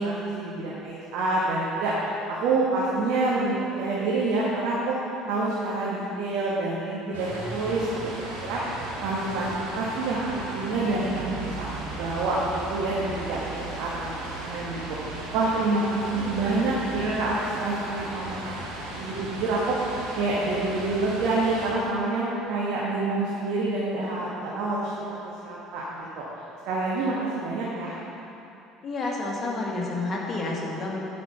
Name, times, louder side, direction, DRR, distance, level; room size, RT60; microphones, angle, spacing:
voice 1, 0.0-4.9 5.3-7.9 8.4-8.6 9.0-14.2 14.4-14.8 15.3-18.6 18.9-19.8 20.2-24.9 25.4-26.2 26.6-28.0, right 2 dB, 60° right, -6 dB, 1.5 m, -27 dB
sound 1, 7.1-21.7, right 2 dB, 75° right, 1.8 m, -36 dB
voice 2, 16.1-16.9 28.8-31.0, left 2 dB, 35° left, -2 dB, 1.9 m, -31 dB
10.5 x 5.2 x 5.6 m, 2.8 s
figure-of-eight pair, 60°, 0 cm